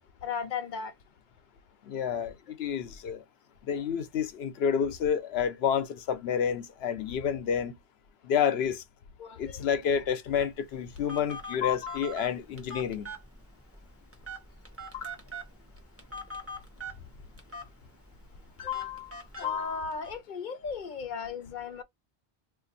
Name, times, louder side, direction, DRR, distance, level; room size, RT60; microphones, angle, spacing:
voice 1, 0.2-0.9 9.2-9.6 11.5-12.1 14.9-15.1 18.6-21.8, left 7 dB, 55° left, 0.7 m, -35 dB
voice 2, 1.8-3.2 3.6-7.7 8.2-8.8 9.4-13.1, left 7 dB, 80° left, 0.9 m, -29 dB
Telephone, 10.3-20.1, right 1 dB, 15° right, 0.9 m, -44 dB
2.6 x 2.5 x 3.9 m
omnidirectional pair, 1.0 m